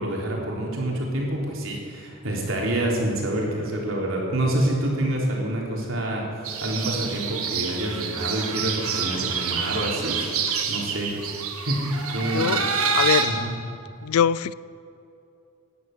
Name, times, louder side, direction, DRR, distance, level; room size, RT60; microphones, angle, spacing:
voice 1, 0.0-10.2 10.7-11.2 11.6-12.7 13.2-13.5, right 1 dB, 70° right, -2 dB, 3.7 m, -27 dB
sound 1, 6.4-13.3, right 6 dB, 90° right, 1.7 m, -27 dB
voice 2, 12.9-13.3 14.0-14.5, left 8 dB, 90° left, 19 dB, 0.4 m, -22 dB
17.0 x 11.0 x 6.8 m, 2.7 s
head